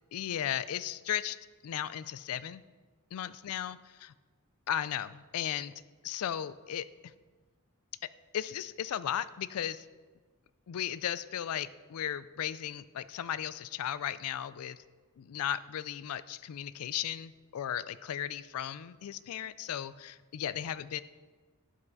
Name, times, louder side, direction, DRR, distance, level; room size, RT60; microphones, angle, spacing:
voice 1, 0.1-1.4 1.6-2.6 3.1-4.1 4.7-5.7 6.0-7.1 8.3-9.8 10.7-14.8 15.2-21.0, left 10 dB, 70° left, 16 dB, 0.3 m, -36 dB
11.5 x 5.4 x 4.0 m, 1.3 s
head